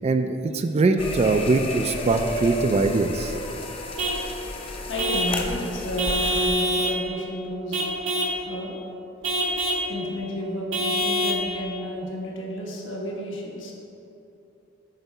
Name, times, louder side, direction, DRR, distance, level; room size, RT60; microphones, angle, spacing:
voice 1, 0.0-3.3, right 3 dB, 30° right, 7 dB, 0.3 m, -22 dB
sound 1, 1.0-6.5, left 2 dB, 30° left, 0.6 m, -32 dB
Vehicle horn car horn honking / Truck, 4.0-4.2 5.0-5.4 6.0-7.0 7.7-8.4 9.2-9.9 10.7-11.4, equal, 80° right, 1.4 m, -25 dB
voice 2, 4.9-7.8 8.5-8.8 9.9-13.7, equal, 70° left, -2 dB, 1.3 m, -32 dB
8.0 x 4.1 x 5.4 m, 2.9 s
head